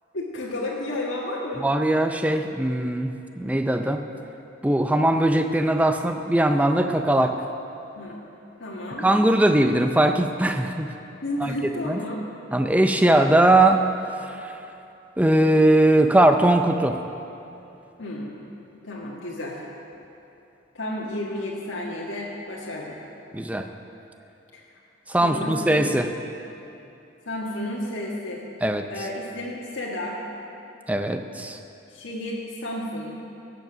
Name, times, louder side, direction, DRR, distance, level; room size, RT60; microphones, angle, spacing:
voice 1, 0.1-1.7 8.0-8.2 8.6-9.1 11.2-12.2 18.0-18.5 18.8-19.6 20.7-23.0 24.5-24.6 25.2-26.2 27.3-28.4 28.9-30.2 31.9-33.2, left 1 dB, 85° left, -4 dB, 1.7 m, -32 dB
voice 2, 1.6-4.0 4.6-7.4 9.0-10.9 11.4-11.5 11.8-12.0 12.5-13.8 14.2-14.6 15.2-17.0 23.3-23.7 25.1-26.1 28.6-28.8 30.9-31.6, right 1 dB, 10° right, 6 dB, 0.5 m, -20 dB
16.5 x 8.1 x 6.2 m, 2.8 s
head